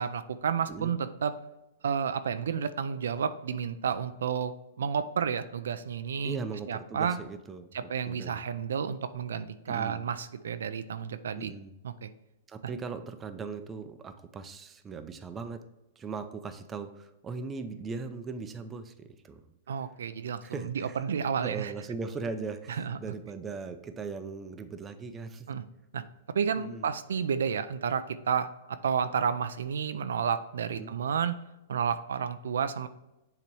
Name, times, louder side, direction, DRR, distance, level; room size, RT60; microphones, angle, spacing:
voice 1, 0.0-1.3 1.8-6.4 6.7-7.2 7.7-11.5 11.8-12.1 19.7-21.7 22.8-23.0 25.5-25.6 25.9-26.0 26.3-31.4 31.7-32.9, right 7 dB, 85° right, 11 dB, 0.4 m, -31 dB
voice 2, 6.2-8.4 9.7-10.0 11.3-11.7 12.5-15.7 16.0-19.5 20.4-21.0 21.4-25.5 26.6-26.9 30.7-31.0, right 4 dB, 20° right, 8 dB, 0.5 m, -39 dB
7.0 x 2.9 x 4.6 m, 0.95 s
hypercardioid pair, 135°, 0 cm